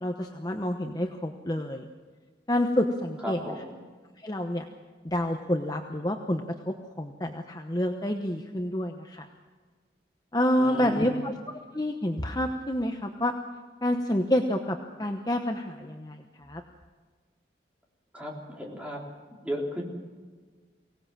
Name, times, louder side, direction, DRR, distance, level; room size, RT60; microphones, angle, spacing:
voice 1, 0.0-1.9 2.5-3.4 4.2-4.6 5.0-9.3 10.3-11.3 11.7-13.3 13.8-16.6, left 1 dB, 20° left, 4 dB, 0.9 m, -28 dB
voice 2, 3.2-3.8 10.6-11.3 18.1-19.0 19.4-19.8, equal, 5° right, -2 dB, 3.7 m, -35 dB
23.5 x 18.0 x 7.5 m, 1.4 s
head